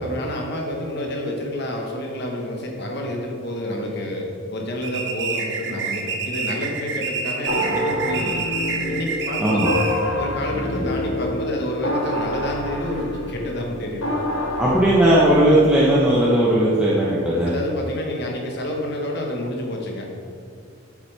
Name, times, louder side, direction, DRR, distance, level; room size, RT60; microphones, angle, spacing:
voice 1, 0.0-8.4 8.9-9.6 10.2-14.1 17.5-20.1, left 1 dB, 55° left, 1 dB, 1.3 m, -29 dB
sound 1, 4.8-10.1, right 5 dB, 55° right, 0.9 m, -27 dB
sound 2, 7.5-16.2, left 1 dB, 75° left, 0.8 m, -27 dB
voice 2, 9.4-9.7 10.6-10.9 14.6-17.5, right 1 dB, 5° right, -8 dB, 0.9 m, -17 dB
8.9 x 7.2 x 3.4 m, 2.3 s
head